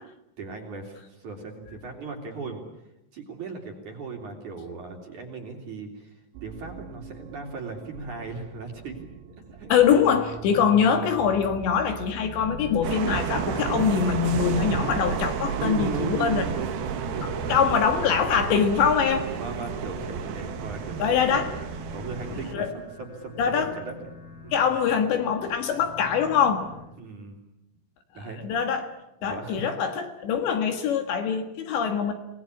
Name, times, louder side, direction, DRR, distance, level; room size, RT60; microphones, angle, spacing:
voice 1, 0.4-2.6 3.1-9.1 9.5-10.0 10.5-10.6 15.6-17.8 19.3-21.5 21.9-24.6 27.0-27.4 28.1-28.6 29.2-29.7, right 4 dB, 40° right, 3 dB, 4.2 m, -37 dB
sound 1, 6.3-18.6, right 6 dB, 85° right, 4.6 m, -43 dB
voice 2, 9.7-16.5 17.5-19.3 21.0-21.5 22.5-22.7 23.4-23.7 24.5-26.7 28.4-28.9 29.2-32.1, left 7 dB, 65° left, 7 dB, 3.7 m, -23 dB
sound 2, 12.0-26.9, left 4 dB, 90° left, 7.7 m, -44 dB
sound 3, 12.8-22.5, right 8 dB, 60° right, 2.9 m, -31 dB
27.5 x 19.5 x 9.9 m, 0.88 s
omnidirectional pair, 5.9 m